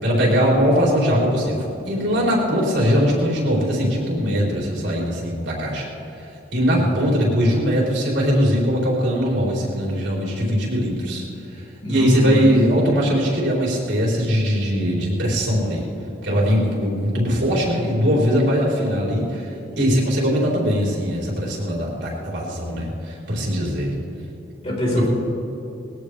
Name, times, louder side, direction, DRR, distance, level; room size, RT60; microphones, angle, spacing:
voice 1, 0.0-5.9 6.2-11.2 11.9-15.9 16.2-23.9 25.0-25.1, equal, 80° right, -4 dB, 4.2 m, -21 dB
voice 2, 11.8-12.4 24.6-25.1, equal, 30° left, -4 dB, 4.5 m, -25 dB
20.5 x 17.5 x 3.4 m, 2.9 s
head